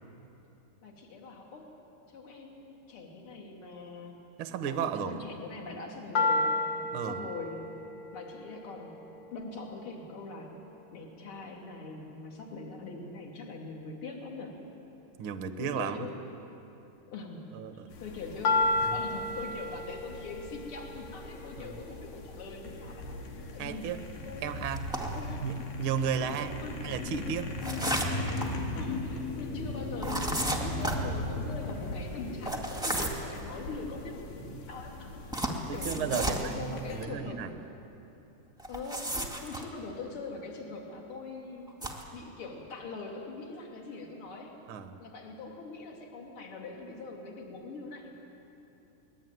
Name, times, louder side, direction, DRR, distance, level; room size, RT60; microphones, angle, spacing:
voice 1, 0.8-1.7 2.1-4.2 4.7-6.6 7.0-7.8 8.1-10.6 10.9-14.6 15.6-16.2 17.1-18.7 18.9-23.1 23.5-24.0 24.2-24.6 25.1-25.5 26.2-26.3 26.6-26.8 27.1-27.2 27.9-34.1 34.7-35.1 35.7-37.5 38.7-39.1 39.4-41.7 42.1-44.6 45.0-48.1, left 3 dB, 40° left, 0 dB, 3.5 m, -42 dB
voice 2, 4.4-5.2 6.9-7.2 15.2-16.1 17.5-17.9 18.8-18.9 21.6-21.8 23.6-24.0 24.4-24.8 25.4-27.5 35.7-37.5 44.7-44.9, right 7 dB, 65° right, 8 dB, 1.3 m, -34 dB
singing bowl, 6.1-10.1 18.4-22.6, left 2 dB, 65° left, 1.1 m, -33 dB
sound 1, 17.9-37.1, left 2 dB, 80° left, 3.9 m, -39 dB
sound 2, 24.8-25.2 27.6-28.5 30.0-31.0 32.4-33.3 35.3-36.5 38.6-39.6 41.7-42.0, right 1 dB, ahead, 1.4 m, -33 dB
23.5 x 21.0 x 9.3 m, 2.9 s
omnidirectional pair, 3.9 m